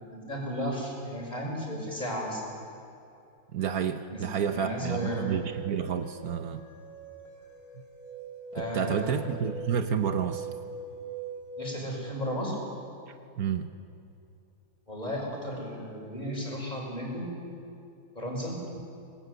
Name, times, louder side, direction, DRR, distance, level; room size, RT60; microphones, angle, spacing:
voice 1, 0.1-2.4 4.1-5.3 8.5-9.1 11.6-12.6 14.9-17.3 18.1-18.6, equal, 25° left, -2 dB, 5.7 m, -34 dB
voice 2, 3.5-6.6 8.5-10.5 13.4-13.7, right 7 dB, 70° right, 8 dB, 1.4 m, -30 dB
sound 1, 4.9-12.1, right 4 dB, 65° left, 4.8 m, -42 dB
25.5 x 20.5 x 8.1 m, 2.6 s
omnidirectional pair, 1.7 m